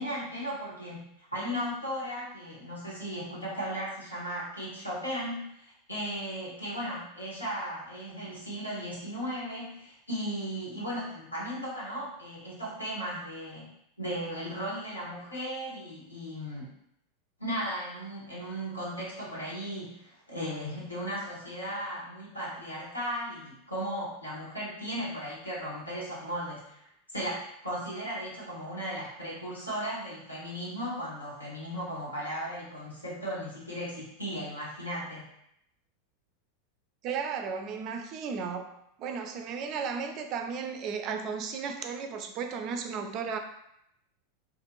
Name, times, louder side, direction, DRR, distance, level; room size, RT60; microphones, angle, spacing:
voice 1, 0.0-13.7 14.0-16.7 17.4-35.2, equal, 90° left, -6 dB, 1.0 m, -36 dB
voice 2, 37.0-38.7 39.0-43.4, right 6 dB, 45° right, 5 dB, 0.3 m, -34 dB
2.5 x 2.5 x 2.9 m, 0.78 s
figure-of-eight pair, 85°, 0 cm